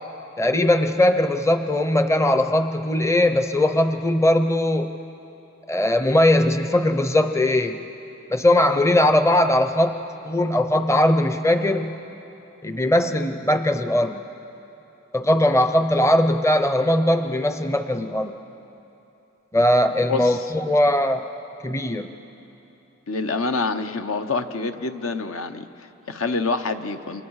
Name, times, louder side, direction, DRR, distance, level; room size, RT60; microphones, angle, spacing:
voice 1, 0.4-5.0 5.7-7.8 8.3-12.0 12.6-14.2 15.1-18.3 19.5-21.2 21.6-22.1, left 1 dB, 15° left, 8 dB, 0.6 m, -20 dB
voice 2, 20.1-20.5 23.1-27.2, left 3 dB, 70° left, 8 dB, 1.0 m, -27 dB
28.5 x 26.0 x 4.8 m, 2.9 s
head